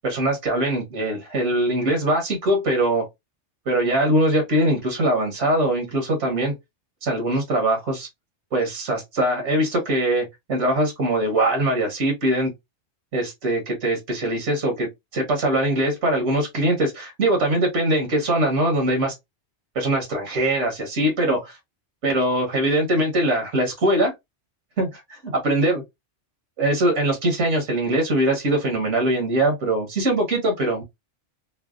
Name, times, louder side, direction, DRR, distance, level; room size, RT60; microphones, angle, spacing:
voice 1, 0.0-3.1 3.7-6.5 7.0-8.1 8.5-12.5 13.1-19.1 19.7-21.6 22.0-24.1 24.8-25.8 26.6-30.8, right 1 dB, 80° right, 1.3 m, -22 dB
3.2 x 2.0 x 2.3 m
omnidirectional pair, 1.2 m